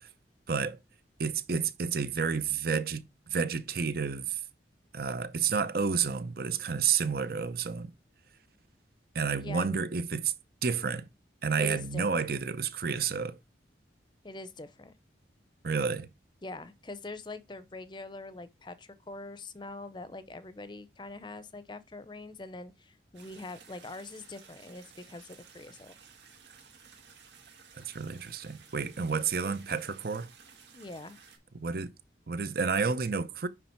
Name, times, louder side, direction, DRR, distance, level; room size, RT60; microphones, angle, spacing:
voice 1, 0.5-0.8 1.2-4.4 4.9-7.9 9.1-10.3 10.6-11.1 11.4-13.4 15.6-16.1 27.8-30.3 31.5-31.9 32.3-33.5, right 5 dB, 55° right, 0.7 m, -30 dB
voice 2, 9.4-9.8 11.6-12.3 14.2-14.9 16.4-25.9 30.7-31.2, left 2 dB, 25° left, 0.6 m, -43 dB
sound 1, 23.1-31.4, right 6 dB, 75° right, 2.0 m, -55 dB
9.7 x 3.3 x 4.5 m
head